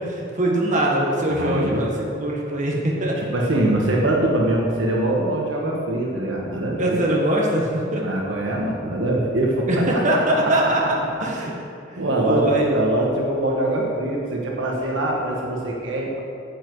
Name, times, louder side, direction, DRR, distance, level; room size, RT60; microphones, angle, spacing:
voice 1, 0.0-3.2 6.8-8.0 9.7-11.5 11.9-12.7, right 1 dB, 40° right, -3 dB, 1.6 m, -22 dB
voice 2, 1.4-1.9 3.3-7.0 8.0-10.0 12.0-16.2, right 1 dB, 70° right, -2 dB, 1.4 m, -23 dB
9.9 x 8.5 x 4.7 m, 2.6 s
head